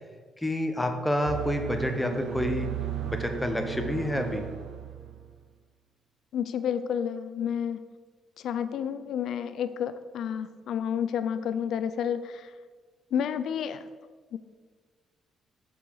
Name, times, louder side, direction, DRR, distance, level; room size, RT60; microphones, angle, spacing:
voice 1, 0.4-2.7 3.0-4.5, left 1 dB, 10° left, 5 dB, 1.0 m, -28 dB
sound 1, 1.3-5.3, right 9 dB, 80° right, 0.6 m, -35 dB
voice 2, 6.3-7.9 8.4-12.5 13.1-13.9 14.3-14.4, left 8 dB, 75° left, 12 dB, 0.4 m, -30 dB
6.7 x 4.7 x 5.5 m, 1.4 s
cardioid pair, 90°, 0 cm